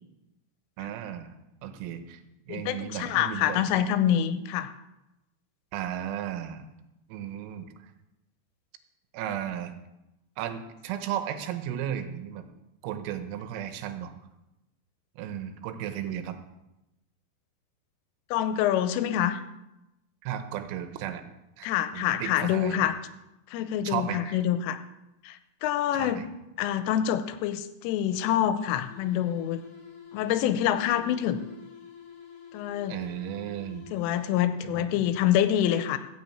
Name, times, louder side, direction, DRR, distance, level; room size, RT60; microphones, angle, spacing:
voice 1, 0.8-1.3 1.6-2.2 2.5-3.6 5.7-6.6 7.1-7.7 9.1-9.7 10.4-12.5 12.8-14.1 15.2-16.4 20.2-21.2 21.6-22.9 23.9-24.4 26.0-26.2 32.9-33.9 34.6-35.0, right 10 dB, 90° right, 8 dB, 3.7 m, -34 dB
voice 2, 2.5-4.7 18.3-19.4 21.6-23.0 23.5-24.8 25.2-26.2 26.6-29.6 30.1-31.4 32.5-33.0 33.9-36.0, left 11 dB, 85° left, 11 dB, 3.2 m, -26 dB
sound 1, 28.7-34.6, left 7 dB, 45° left, 2.2 m, -48 dB
13.5 x 6.6 x 8.4 m, 0.94 s
omnidirectional pair, 5.9 m